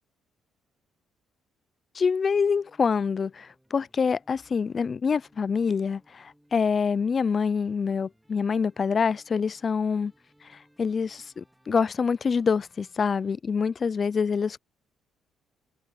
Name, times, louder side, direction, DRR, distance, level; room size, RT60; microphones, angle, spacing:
voice 1, 1.9-10.1 10.4-14.6, left 5 dB, 35° left, 0.3 m, -26 dB
sound 1, 2.3-13.3, equal, 5° right, 4.2 m, -64 dB
cardioid pair, 115°, 0 cm